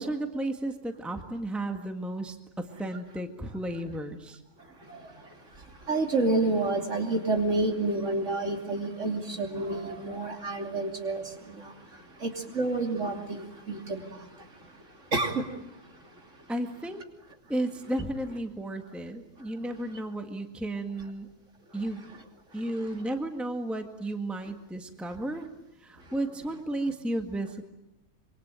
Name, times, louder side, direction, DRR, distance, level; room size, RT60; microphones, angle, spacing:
voice 1, 0.0-4.4 16.5-17.0 17.5-21.3 21.7-22.1 22.5-25.5 25.8-27.6, right 1 dB, ahead, 1.7 m, -33 dB
voice 2, 5.9-11.2 11.5-11.7 12.2-14.0 15.1-15.4, right 2 dB, 50° right, 3.3 m, -29 dB
26.0 x 24.0 x 9.0 m
omnidirectional pair, 1.6 m